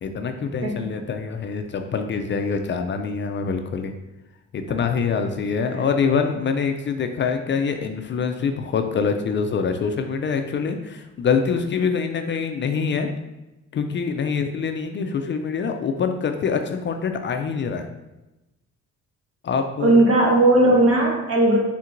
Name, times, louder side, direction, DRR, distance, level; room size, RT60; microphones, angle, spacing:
voice 1, 0.0-3.9 4.5-13.1 13.7-17.9 19.4-20.0, left 5 dB, 40° left, 6 dB, 0.4 m, -25 dB
voice 2, 19.8-21.6, right 2 dB, 50° right, -1 dB, 1.2 m, -17 dB
4.2 x 3.6 x 2.5 m, 1.0 s
cardioid pair, 90°, 30 cm